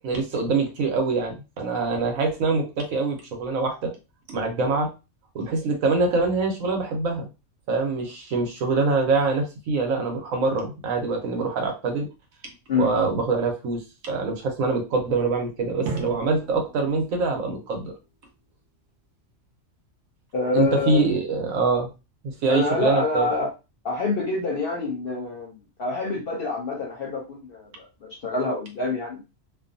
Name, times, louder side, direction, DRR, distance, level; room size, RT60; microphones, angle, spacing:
voice 1, 0.0-3.9 4.3-4.9 5.3-7.3 7.7-12.1 12.8-17.9 20.5-21.9 22.2-23.3, right 4 dB, 85° right, 3 dB, 1.2 m, -24 dB
Drum, 15.9-18.4, right 4 dB, 60° right, 0.9 m, -37 dB
voice 2, 20.3-21.0 22.5-23.5 23.8-25.5 25.8-29.2, left 3 dB, 55° left, 0 dB, 0.7 m, -26 dB
2.6 x 2.3 x 2.5 m, 0.28 s
omnidirectional pair, 1.4 m